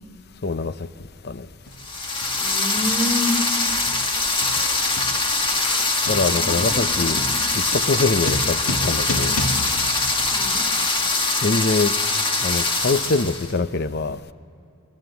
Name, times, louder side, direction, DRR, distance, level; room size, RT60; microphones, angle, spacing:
voice 1, 0.4-0.7 1.2-1.5 6.1-7.2 7.5-9.4 11.4-11.9 12.4-14.2, left 3 dB, 45° left, 13 dB, 0.7 m, -23 dB
sound 1, 0.6-0.7 1.7-1.9 2.2-10.8, left 1 dB, 75° left, 1.7 m, -33 dB
sound 2, 1.8-13.5, left 3 dB, 20° left, 1.5 m, -23 dB
voice 2, 2.4-3.3 6.3-7.4 10.3-10.6, left 1 dB, ahead, 1 dB, 2.7 m, -29 dB
25.0 x 21.5 x 8.1 m, 2.6 s
head